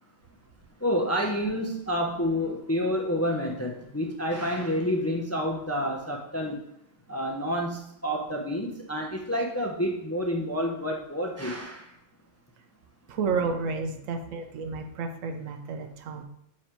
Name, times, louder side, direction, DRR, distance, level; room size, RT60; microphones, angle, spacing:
voice 1, 0.8-6.6 7.1-11.8, equal, 15° left, 0 dB, 0.5 m, -29 dB
voice 2, 13.1-16.2, right 5 dB, 80° right, 6 dB, 1.1 m, -31 dB
7.4 x 3.2 x 4.4 m, 0.75 s
omnidirectional pair, 1.3 m